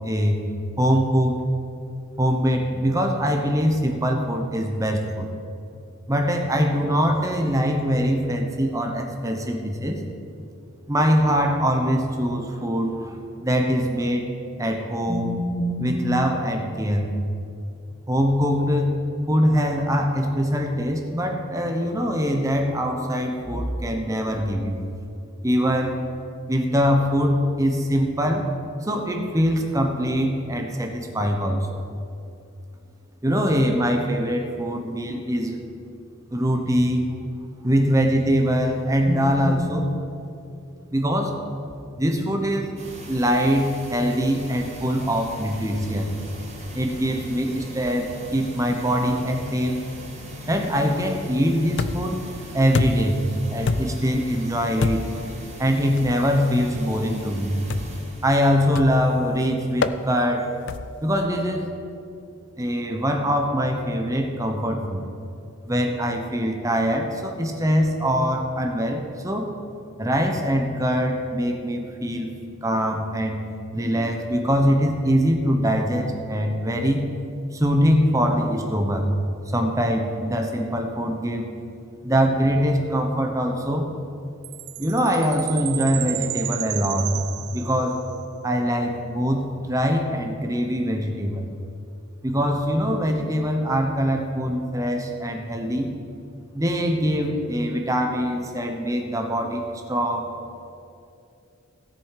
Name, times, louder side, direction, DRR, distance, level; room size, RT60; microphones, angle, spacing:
voice 1, 0.0-0.4 0.8-1.4 2.2-5.3 6.1-10.0 10.9-13.2 13.4-14.3 14.6-17.1 18.1-18.9 19.3-24.8 25.4-26.0 26.5-28.5 28.8-31.7 33.2-35.6 36.3-37.0 37.6-39.9 40.9-41.3 42.0-42.8 43.1-46.1 46.7-49.8 50.5-52.2 52.5-53.2 53.5-55.1 55.6-57.6 58.2-60.5 61.0-61.8 62.6-65.0 65.7-69.5 70.0-72.3 72.6-73.4 73.7-77.0 77.5-79.1 79.5-81.5 82.0-83.9 84.8-87.1 87.5-88.0 88.4-91.5 92.2-95.9 96.5-100.3, equal, 15° right, 3 dB, 0.9 m, -23 dB
sound 1, 42.8-59.4, equal, 30° right, 1.9 m, -40 dB
sound 2, 51.8-52.2 52.7-53.2 53.7-54.1 54.8-55.2 56.0-56.2 57.7-58.1 58.8-59.1 59.8-60.0 60.7-61.0, left 3 dB, 55° left, 0.4 m, -26 dB
Chime, 84.4-88.2, right 17 dB, 90° right, 0.4 m, -33 dB
16.5 x 7.1 x 4.8 m, 2.6 s
head